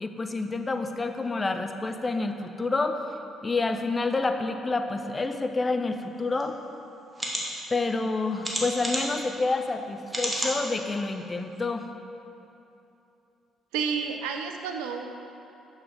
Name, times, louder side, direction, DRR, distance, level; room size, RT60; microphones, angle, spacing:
voice 1, 0.0-3.0 3.4-6.6 7.7-11.9, left 3 dB, 25° left, 6 dB, 0.5 m, -28 dB
sound 1, 6.4-6.5 7.1-7.4 8.4-9.2 10.1-10.6 11.1-11.2 11.6-11.7, right 1 dB, 15° right, 1.7 m, -30 dB
voice 2, 13.7-15.1, right 6 dB, 70° right, 4 dB, 0.5 m, -30 dB
9.4 x 6.7 x 3.4 m, 2.8 s
figure-of-eight pair, 45°, 0 cm